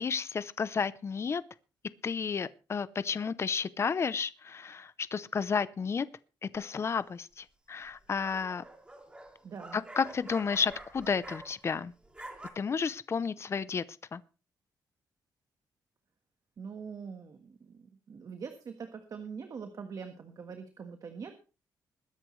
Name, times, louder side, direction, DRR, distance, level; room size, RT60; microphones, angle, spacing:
voice 1, 0.0-1.4 2.0-6.1 6.5-8.6 9.7-11.9 12.6-13.8 14.1-14.2, left 6 dB, 35° left, 0.7 m, -32 dB
sound 1, 6.5-7.0 7.9-11.8 12.0-12.5, right 1 dB, 15° right, 2.4 m, -48 dB
voice 2, 9.4-9.8 16.6-21.3, right 6 dB, 50° right, 1.5 m, -43 dB
21.5 x 10.0 x 3.2 m
cardioid pair, 125°, 8 cm